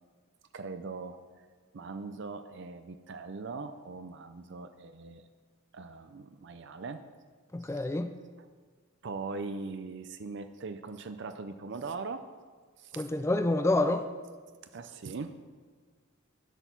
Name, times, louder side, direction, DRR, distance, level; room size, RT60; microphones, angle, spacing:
voice 1, 0.5-1.4 1.7-5.2 5.7-7.0 7.6-7.8 9.0-12.3 12.8-13.1 14.7-15.3, right 4 dB, 60° right, 9 dB, 0.5 m, -40 dB
voice 2, 7.5-8.1 13.0-14.1, left 2 dB, 15° left, 8 dB, 0.4 m, -27 dB
10.0 x 8.0 x 5.9 m, 1.5 s
head